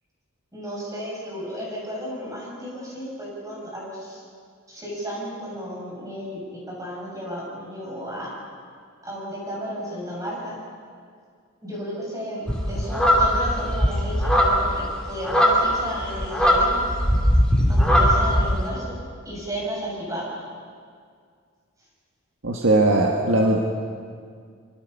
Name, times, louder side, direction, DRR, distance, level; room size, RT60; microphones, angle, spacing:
voice 1, 0.5-4.2 4.7-8.3 9.0-10.6 11.6-16.8 17.7-19.0 19.2-20.4, equal, 15° right, -4 dB, 7.0 m, -33 dB
sound 1, 12.5-18.6, equal, 5° left, 2.9 m, -19 dB
voice 2, 22.4-23.6, right 2 dB, 65° right, 0 dB, 1.7 m, -19 dB
25.0 x 24.5 x 5.6 m, 2.1 s
head